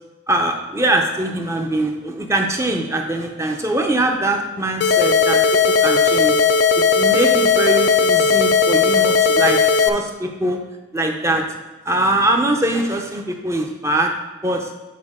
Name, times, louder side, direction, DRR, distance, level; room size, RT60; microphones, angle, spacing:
voice 1, 0.3-5.4 5.8-6.3 6.9-9.6 9.9-10.6 10.9-11.4 11.9-14.1 14.4-14.7, right 1 dB, 15° right, 3 dB, 0.6 m, -22 dB
sound 1, 4.8-9.9, left 5 dB, 55° left, 0.4 m, -16 dB
8.5 x 4.6 x 3.6 m, 1.2 s
head